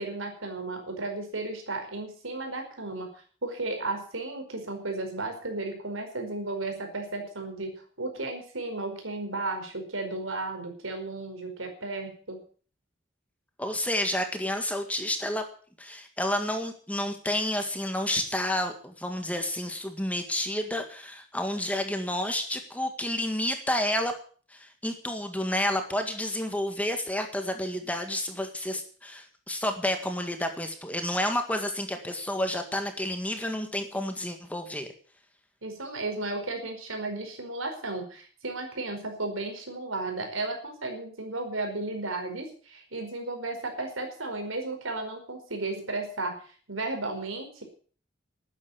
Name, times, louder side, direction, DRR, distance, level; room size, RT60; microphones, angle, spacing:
voice 1, 0.0-3.1 3.4-12.4 35.6-47.6, right 2 dB, 90° right, 4 dB, 5.0 m, -34 dB
voice 2, 13.6-15.4 15.8-24.1 24.5-34.9, left 1 dB, 5° left, 6 dB, 1.8 m, -30 dB
13.0 x 9.7 x 8.4 m, 0.43 s
head